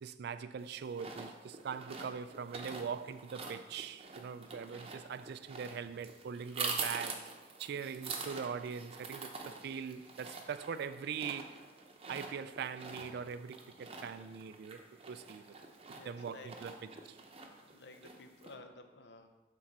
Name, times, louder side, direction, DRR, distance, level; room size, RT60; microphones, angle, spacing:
voice 1, 0.0-7.2 7.6-11.6 12.1-14.8 15.1-15.6 15.9-16.8 17.0-17.2, right 6 dB, 60° right, 0.3 m, -42 dB
sound 1, 0.6-18.5, right 4 dB, 35° right, 0.8 m, -45 dB
voice 2, 15.9-16.6 17.7-19.3, left 2 dB, 70° left, 0.7 m, -53 dB
7.2 x 3.8 x 5.9 m
head